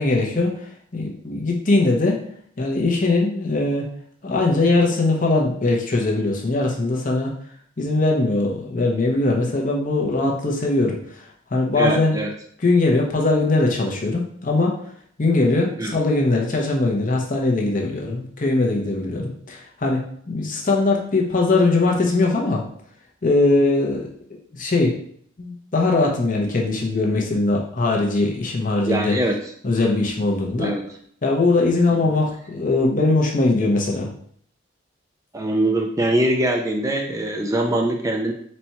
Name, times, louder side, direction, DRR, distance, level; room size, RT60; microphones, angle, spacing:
voice 1, 0.0-2.2 2.6-3.9 4.2-7.3 7.8-12.2 12.6-14.8 15.2-22.6 23.2-24.9 25.4-29.1 29.6-30.7 31.2-34.1, left 2 dB, 40° left, -1 dB, 0.8 m, -21 dB
voice 2, 11.8-12.3 15.8-16.0 28.9-29.4 30.6-30.8 35.3-38.3, right 1 dB, 15° right, 2 dB, 0.3 m, -22 dB
4.3 x 2.3 x 4.2 m, 0.62 s
head